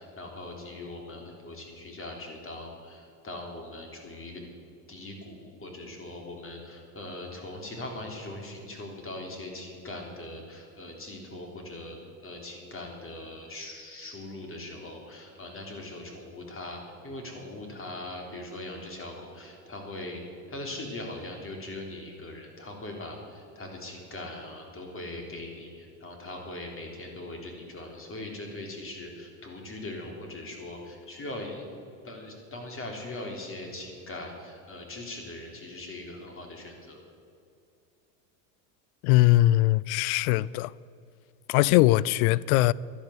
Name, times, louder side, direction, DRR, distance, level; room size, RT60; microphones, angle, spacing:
voice 1, 0.0-4.4 4.9-12.0 12.2-20.2 20.5-31.7 32.0-37.0, left 2 dB, 30° left, 3.5 m, -40 dB
voice 2, 39.0-40.7 41.5-42.7, left 17 dB, 70° left, 0.5 m, -21 dB
11.5 x 10.5 x 8.0 m
supercardioid pair, 100°, 45 cm